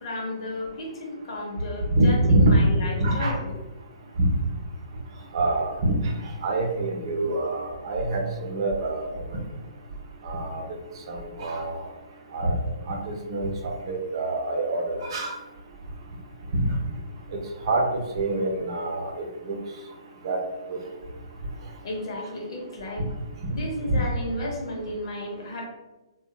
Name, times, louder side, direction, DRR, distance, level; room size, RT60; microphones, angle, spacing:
voice 1, 0.0-3.5 21.8-23.1 23.5-25.7, left 1 dB, 55° left, 0 dB, 0.7 m, -33 dB
voice 2, 1.9-2.6 3.0-3.4 4.2-4.3 5.3-5.9 6.4-9.1 10.2-10.6 11.1-11.8 12.3-12.5 12.9-15.3 17.6-19.6 20.2-20.4, right 2 dB, 50° right, 0 dB, 0.6 m, -25 dB
2.7 x 2.2 x 2.2 m, 1.1 s
hypercardioid pair, 130°, 3 cm